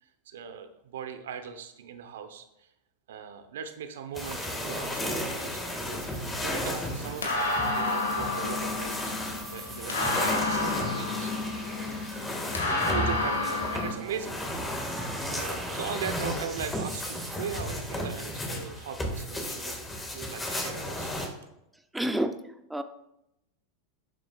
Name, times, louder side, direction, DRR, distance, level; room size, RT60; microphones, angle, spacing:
voice 1, 0.0-2.7 3.1-6.0 6.4-9.1 9.5-11.3 12.9-14.4 15.3-21.1, right 7 dB, 75° right, 8 dB, 1.0 m, -39 dB
sound 1, 4.2-21.3, left 1 dB, 15° left, 2.1 m, -34 dB
sound 2, 4.2-17.4, right 4 dB, 20° right, 2.3 m, -47 dB
sound 3, 5.9-13.9, left 2 dB, 85° left, 1.8 m, -31 dB
voice 2, 21.9-22.3 22.7-22.8, right 1 dB, 5° right, 8 dB, 0.6 m, -28 dB
11.5 x 7.6 x 2.5 m, 0.84 s
hypercardioid pair, 95°, 0 cm